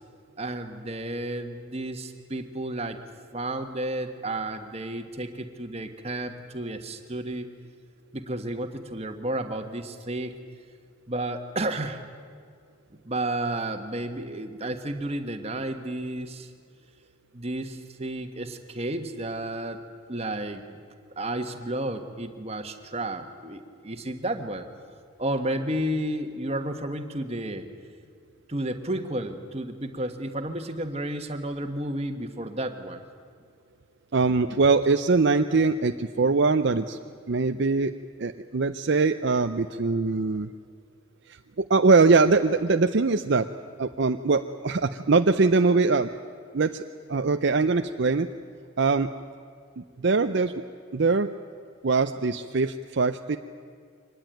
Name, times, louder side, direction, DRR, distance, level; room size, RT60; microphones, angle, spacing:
voice 1, 0.4-3.0 3.3-7.5 8.1-10.3 11.1-12.0 13.0-16.5 17.3-19.8 20.1-20.8 21.2-24.7 25.2-27.7 28.5-33.0 35.5-35.6, right 1 dB, 30° right, 6 dB, 1.5 m, -32 dB
voice 2, 34.1-37.0 37.3-37.9 38.2-40.5 41.3-43.5 43.8-46.1 46.5-46.8 47.1-48.3 48.8-49.1 49.8-50.5 50.9-51.3 51.8-53.4, right 4 dB, 55° right, 8 dB, 0.6 m, -22 dB
24.5 x 19.5 x 9.1 m, 2.2 s
head